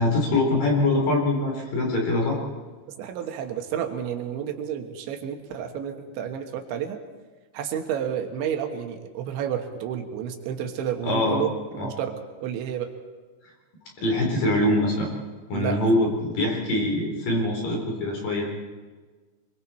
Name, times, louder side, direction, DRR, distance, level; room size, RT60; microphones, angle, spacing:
voice 1, 0.0-2.4 11.0-11.4 11.8-11.9 14.0-15.1 15.5-18.5, left 1 dB, 50° left, 0 dB, 5.7 m, -23 dB
voice 2, 3.0-7.0 7.5-11.5 11.8-12.1 12.4-12.9 15.5-15.8, right 9 dB, 75° right, 5 dB, 3.7 m, -30 dB
25.0 x 23.5 x 4.5 m, 1.4 s
omnidirectional pair, 5.4 m